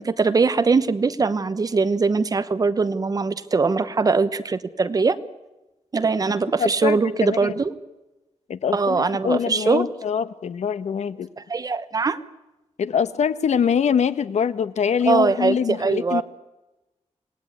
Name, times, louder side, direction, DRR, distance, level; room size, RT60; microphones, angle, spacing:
voice 1, 0.0-5.2 5.9-7.7 8.7-9.8 11.5-12.2 15.1-16.2, right 4 dB, 30° right, 12 dB, 1.0 m, -21 dB
voice 2, 6.6-7.5 8.5-11.3 12.8-16.2, left 7 dB, 80° left, 13 dB, 1.1 m, -24 dB
27.0 x 18.5 x 9.5 m, 1.0 s
wide cardioid pair, 180°, 12 cm